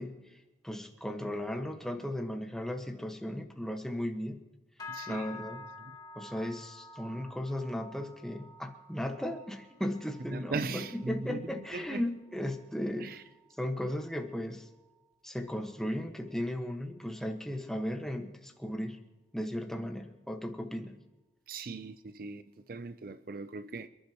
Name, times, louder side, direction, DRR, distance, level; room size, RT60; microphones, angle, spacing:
voice 1, 0.0-4.4 5.1-5.6 6.1-13.1 13.6-14.7 15.2-19.0 19.3-21.0, left 1 dB, 5° left, 1.3 m, -36 dB
sound 1, 4.8-14.3 14.6-15.1 15.5-15.8 16.4-16.5, left 3 dB, 20° left, 1.6 m, -51 dB
voice 2, 4.9-5.4 5.8-5.9 10.3-12.0 13.0-13.2 21.5-23.9, right 4 dB, 55° right, 0.5 m, -39 dB
27.5 x 11.5 x 3.0 m
head